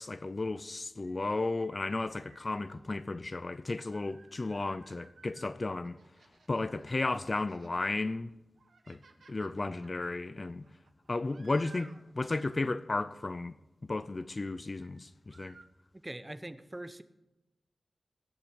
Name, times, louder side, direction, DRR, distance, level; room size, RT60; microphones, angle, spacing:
voice 1, 0.0-6.0 6.5-8.3 8.9-9.0 9.3-10.7 11.1-13.6 13.8-15.6, left 3 dB, 40° left, 0.6 m, -34 dB
sound 1, 1.0-2.5 3.5-5.5 5.8-7.9 8.3-12.6 14.7-15.0 15.3-15.7, right 4 dB, 80° right, 1.5 m, -59 dB
voice 2, 16.0-17.0, right 1 dB, 15° right, 0.9 m, -42 dB
19.5 x 7.6 x 9.6 m
wide cardioid pair, 85°, 0 cm